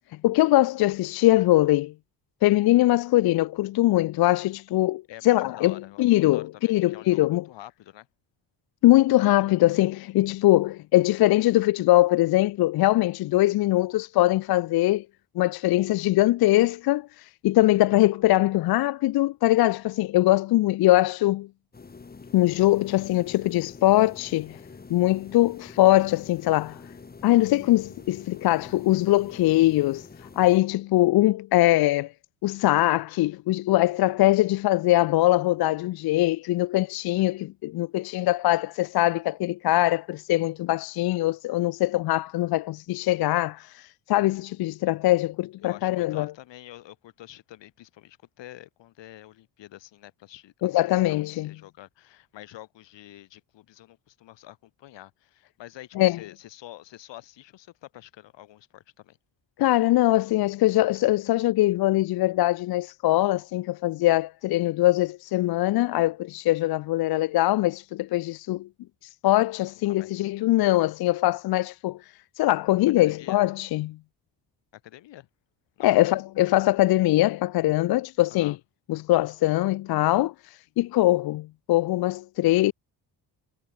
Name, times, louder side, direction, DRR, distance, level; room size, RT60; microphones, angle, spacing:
voice 1, 0.2-1.9 2.4-7.4 8.8-15.0 15.4-21.5 22.3-24.6 24.9-26.8 27.2-30.0 30.4-32.1 32.4-46.3 50.6-51.5 56.0-56.2 59.6-68.7 69.2-72.0 72.4-74.0 75.8-78.5 78.9-80.3 80.8-82.7, left 16 dB, 60° left, 0.5 m, -22 dB
voice 2, 5.1-8.1 45.6-59.2 69.8-70.3 73.0-73.4 74.7-75.3 75.8-75.9 78.3-78.6, left 14 dB, 90° left, 6.1 m, -47 dB
sound 1, 21.7-30.6, left 4 dB, 20° left, 1.7 m, -46 dB
cardioid pair, 125°, 42 cm